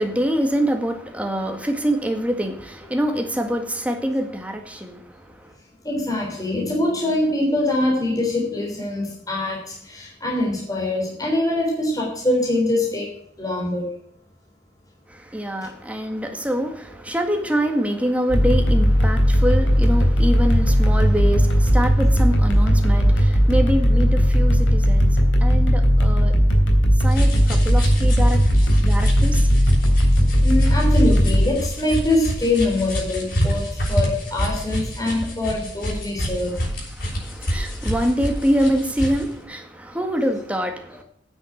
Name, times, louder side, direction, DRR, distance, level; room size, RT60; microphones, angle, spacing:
voice 1, 0.0-5.0 15.1-26.4 27.0-28.4 28.8-29.4 37.0-41.0, equal, 5° right, 4 dB, 1.8 m, -25 dB
voice 2, 5.8-13.1 13.4-13.9 15.6-15.7 30.4-36.6, left 1 dB, 20° left, -3 dB, 3.6 m, -23 dB
sound 1, 18.3-31.5, equal, 75° left, 3.4 m, -17 dB
sound 2, 27.1-39.3, equal, 50° left, 6.5 m, -27 dB
9.9 x 8.1 x 7.8 m, 0.68 s
head